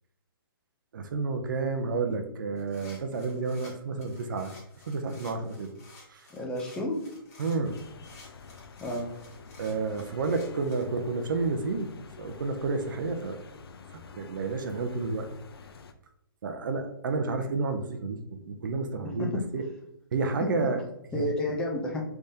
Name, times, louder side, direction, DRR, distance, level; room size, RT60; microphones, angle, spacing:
voice 1, 0.9-4.5 4.9-5.7 6.1-6.3 7.4-7.8 9.6-11.9 12.2-13.4 13.9-15.3 16.4-19.7 20.1-20.8 21.1-21.3, right 3 dB, 55° right, 6 dB, 0.6 m, -30 dB
sound 1, 2.6-10.8, left 2 dB, 40° left, 1.3 m, -54 dB
voice 2, 6.3-7.0 8.8-9.1 19.0-19.4 20.4-20.5 21.1-22.0, left 1 dB, 5° left, -1 dB, 0.5 m, -31 dB
sound 2, 7.6-15.9, left 5 dB, 80° left, 0.5 m, -48 dB
5.1 x 3.5 x 2.7 m, 0.81 s
hypercardioid pair, 160°, 13 cm